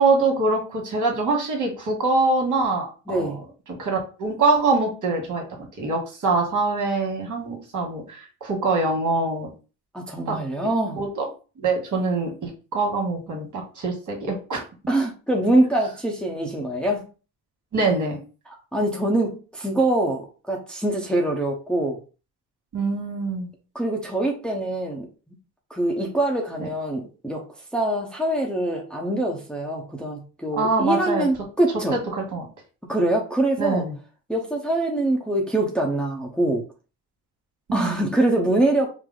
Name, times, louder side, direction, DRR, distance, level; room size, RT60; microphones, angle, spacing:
voice 1, 0.0-3.4 3.8-5.4 5.8-9.5 10.3-10.4 10.9-11.3 11.6-14.6 17.7-18.2 22.7-23.5 26.6-26.7 30.5-31.3 31.9-32.5 33.6-33.9 37.7-38.0, right 3 dB, 55° right, 1.5 m, -24 dB
voice 2, 3.1-3.4 9.9-11.0 14.9-17.0 18.5-22.0 23.7-25.1 25.7-27.4 27.7-32.0 32.9-33.8 34.3-36.6 37.7-38.9, right 1 dB, ahead, 0.8 m, -24 dB
4.8 x 2.0 x 3.8 m
cardioid pair, 105°, 38 cm